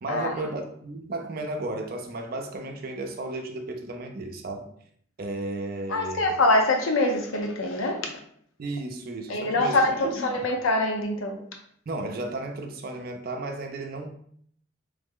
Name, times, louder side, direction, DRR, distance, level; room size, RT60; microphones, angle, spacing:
voice 1, 0.0-4.7 5.2-6.4 8.6-10.5 11.9-14.1, right 2 dB, 45° right, 4 dB, 0.5 m, -34 dB
voice 2, 5.9-8.1 9.3-11.4, left 2 dB, 85° left, 3 dB, 0.6 m, -24 dB
3.2 x 2.0 x 3.7 m, 0.63 s
head